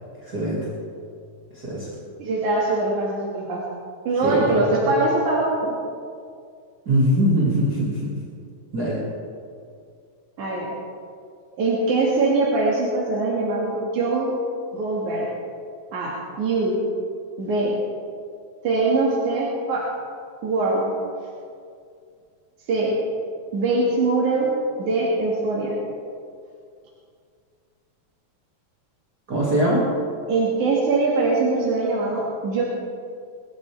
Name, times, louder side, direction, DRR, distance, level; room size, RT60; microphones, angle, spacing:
voice 1, 0.2-0.6 1.5-1.9 4.2-4.9 6.9-8.1 8.7-9.0 29.3-29.9, equal, 35° right, -7 dB, 2.8 m, -22 dB
voice 2, 2.2-3.6 4.0-5.7 10.4-10.7 11.6-14.3 14.7-15.3 15.9-16.8 17.4-17.7 18.6-19.8 20.4-20.9 22.7-22.9 23.5-24.5 24.8-25.7 30.3-32.6, right 3 dB, 90° right, -6 dB, 3.5 m, -22 dB
23.0 x 13.5 x 3.5 m, 2.3 s
omnidirectional pair, 3.3 m